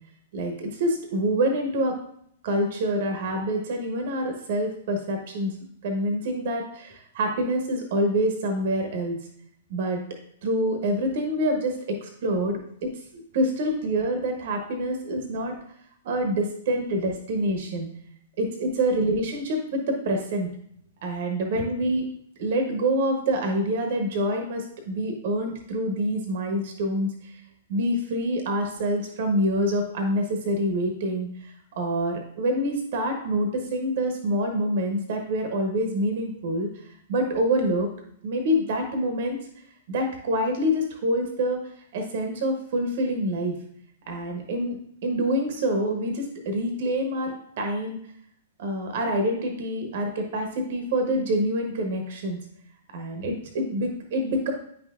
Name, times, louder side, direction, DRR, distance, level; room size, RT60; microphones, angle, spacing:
voice 1, 0.3-2.0 2.4-5.6 5.8-9.2 9.7-10.0 10.4-15.6 16.0-17.9 18.4-20.5 21.0-22.1 22.4-27.4 27.7-37.9 38.2-39.4 39.9-41.6 41.9-43.5 44.1-44.8 45.0-48.0 48.6-52.4 52.9-54.5, right 1 dB, 55° right, 4 dB, 1.2 m, -26 dB
9.4 x 6.0 x 2.5 m, 0.69 s
figure-of-eight pair, 105°, 0 cm